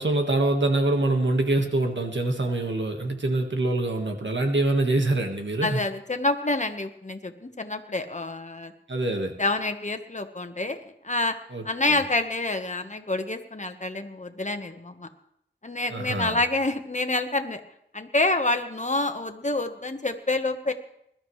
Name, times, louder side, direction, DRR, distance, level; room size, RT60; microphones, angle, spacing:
voice 1, 0.0-5.8 8.9-9.3 11.5-12.0 15.9-16.4, right 2 dB, 85° right, 4 dB, 1.7 m, -25 dB
voice 2, 5.6-8.7 9.4-11.3 11.6-15.1 15.6-17.6 17.9-20.7, left 2 dB, 40° left, 7 dB, 1.3 m, -27 dB
21.0 x 12.5 x 3.3 m, 0.75 s
wide cardioid pair, 40°, 19 cm